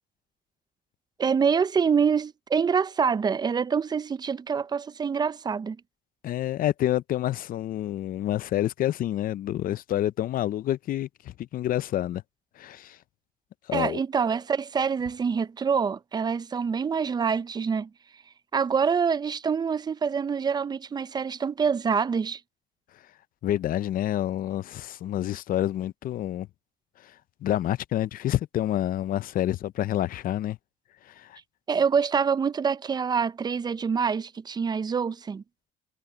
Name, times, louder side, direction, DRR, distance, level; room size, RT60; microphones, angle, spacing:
voice 1, 1.2-5.8 13.7-17.9 18.5-22.4 31.7-35.4, right 6 dB, 25° right, 0.5 m, -26 dB
voice 2, 6.2-12.2 12.6-13.0 13.7-14.0 23.4-26.5 27.0-27.1 27.4-30.6 31.1-31.4, left 12 dB, 55° left, 0.6 m, -28 dB
cardioid pair, 110°, 17 cm